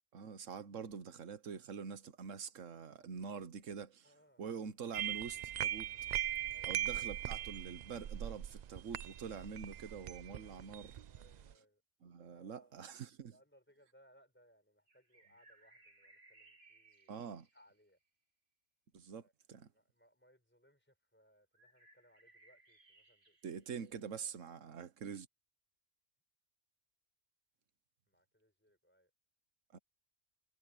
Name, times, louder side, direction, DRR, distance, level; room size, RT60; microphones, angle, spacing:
voice 1, 0.1-4.1 4.4-5.9 6.6-11.0 12.0-13.4 17.1-17.5 18.9-19.2 19.5-19.7 23.4-25.3 29.7-29.8, right 6 dB, 85° right, 1.4 m, -45 dB
voice 2, 4.0-4.4 6.5-6.7 10.3-10.7 11.1-11.8 12.3-12.8 13.3-17.1 17.5-18.0 19.2-23.5 24.0-24.1 24.5-24.8 28.1-29.1, equal, 10° left, 5.3 m, -69 dB
sound 1, 4.9-11.5, right 11 dB, 65° right, 0.4 m, -40 dB
sound 2, 14.9-18.1 21.5-24.5, right 2 dB, 45° right, 2.9 m, -66 dB
omnidirectional pair, 1.3 m